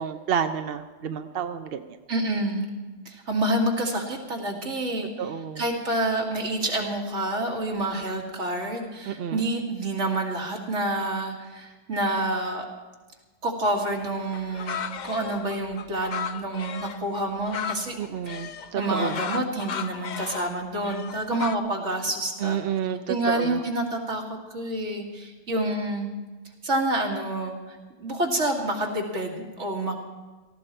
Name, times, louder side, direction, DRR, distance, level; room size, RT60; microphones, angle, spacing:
voice 1, 0.0-1.8 5.2-5.6 9.1-9.4 18.0-19.2 22.4-23.6, right 8 dB, 60° right, 8 dB, 0.8 m, -30 dB
voice 2, 2.1-2.7 3.1-12.7 13.4-18.0 18.2-22.6 23.1-26.1 26.6-29.9, right 1 dB, 80° right, 1 dB, 2.4 m, -28 dB
sound 1, 14.3-21.6, left 7 dB, 50° left, 0.6 m, -35 dB
18.0 x 15.0 x 4.4 m, 1.3 s
omnidirectional pair, 1.2 m